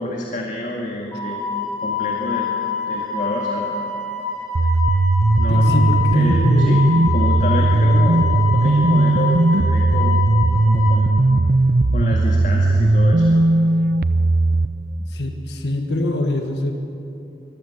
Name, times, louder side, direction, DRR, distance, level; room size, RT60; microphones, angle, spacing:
voice 1, 0.0-1.4 1.8-2.5 2.9-3.7 5.4-6.8 7.1-10.3 10.7-11.3 11.9-13.4, left 1 dB, 45° left, -1 dB, 2.2 m, -28 dB
Wind instrument woodwind instrument, 1.1-11.0, left 6 dB, 15° left, 5.4 m, -26 dB
sound 1, 4.5-14.7, right 2 dB, 55° right, 0.7 m, -17 dB
voice 2, 5.5-6.8 15.1-16.7, left 1 dB, 75° left, 3 dB, 1.6 m, -23 dB
24.5 x 15.0 x 9.6 m, 2.9 s
head